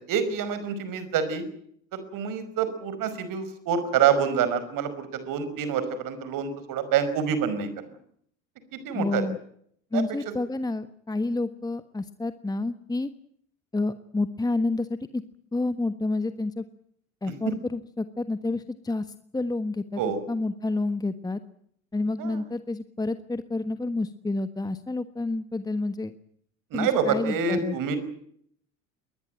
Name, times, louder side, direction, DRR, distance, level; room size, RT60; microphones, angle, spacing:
voice 1, 0.1-1.5 1.9-7.7 8.7-9.2 9.9-10.0 20.0-20.2 22.2-22.4 26.7-28.0, right 7 dB, 50° right, 12 dB, 5.3 m, -27 dB
voice 2, 8.9-9.4 9.9-13.1 13.7-15.2 15.5-16.6 17.2-19.1 19.3-20.0 20.3-21.4 21.9-26.1 26.7-27.8, left 2 dB, 10° left, 11 dB, 1.3 m, -29 dB
22.0 x 20.0 x 9.0 m, 0.68 s
hypercardioid pair, 70°, 41 cm